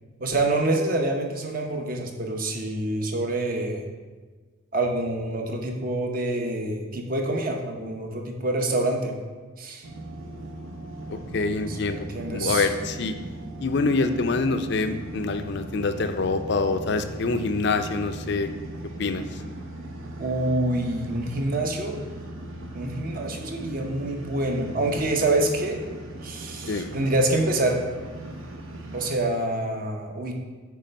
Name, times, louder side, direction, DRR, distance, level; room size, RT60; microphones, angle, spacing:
voice 1, 0.2-3.9 4.7-9.2 9.6-9.9 11.7-12.7 20.2-22.0 22.7-25.8 26.2-27.8 28.9-30.3, right 2 dB, 45° right, 2 dB, 0.8 m, -26 dB
sound 1, 9.8-29.1, right 1 dB, 75° right, 0.8 m, -38 dB
voice 2, 11.1-13.1 13.6-18.5 19.0-19.2 26.7-26.9, left 3 dB, 55° left, 8 dB, 0.5 m, -26 dB
8.4 x 3.3 x 5.3 m, 1.4 s
head